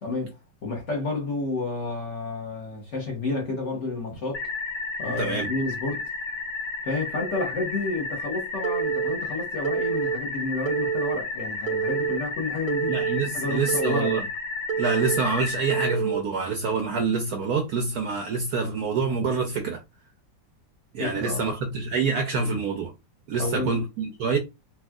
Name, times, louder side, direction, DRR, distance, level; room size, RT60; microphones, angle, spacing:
voice 1, 0.0-4.4 5.0-6.0 6.8-12.9 13.3-14.2 21.0-21.4 23.4-23.7, left 3 dB, 50° left, 1.0 m, -30 dB
sound 1, 4.3-15.9, left 3 dB, 70° left, 0.7 m, -33 dB
voice 2, 5.2-5.5 12.9-14.3 14.8-19.8 20.9-22.9 23.3-24.4, right 4 dB, 70° right, 0.9 m, -26 dB
Telephone, 8.6-9.2 9.6-10.2 10.7-11.2 11.7-12.2 12.7-13.2 13.7-14.2 14.7-15.2 15.7-16.2, right 8 dB, 90° right, 1.4 m, -27 dB
4.4 x 2.4 x 2.3 m
omnidirectional pair, 2.1 m